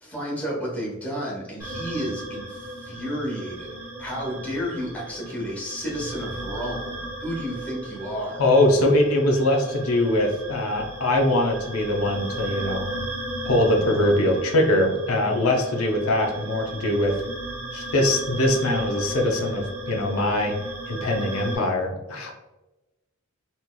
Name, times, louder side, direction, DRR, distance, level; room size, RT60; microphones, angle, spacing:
voice 1, 0.0-8.5, equal, 5° left, -5 dB, 1.1 m, -32 dB
sound 1, 1.6-21.6, right 1 dB, 10° right, 1.5 m, -36 dB
voice 2, 8.4-12.9 13.4-17.1 17.7-20.5 20.9-22.3, left 1 dB, 80° left, 2 dB, 0.6 m, -22 dB
4.1 x 2.9 x 2.2 m, 1.0 s
head